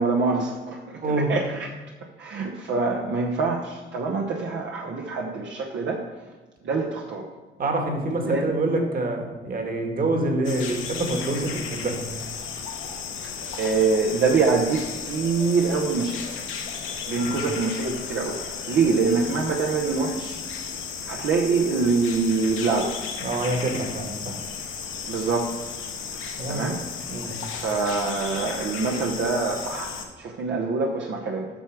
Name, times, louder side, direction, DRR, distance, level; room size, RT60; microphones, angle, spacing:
voice 1, 0.0-1.7 2.2-6.0 6.6-7.3 8.2-8.5 13.6-16.4 17.1-20.4 21.1-22.9 25.1-25.5 26.5-26.8 27.5-31.5, right 4 dB, 65° right, -1 dB, 0.9 m, -25 dB
voice 2, 7.6-12.0 17.1-17.4 23.2-24.4 26.4-26.6 27.1-27.3, right 2 dB, 45° right, 3 dB, 1.7 m, -26 dB
sound 1, 10.4-30.1, left 6 dB, 80° left, 1.2 m, -34 dB
8.1 x 5.9 x 4.7 m, 1.3 s
cardioid pair, 90°, 20 cm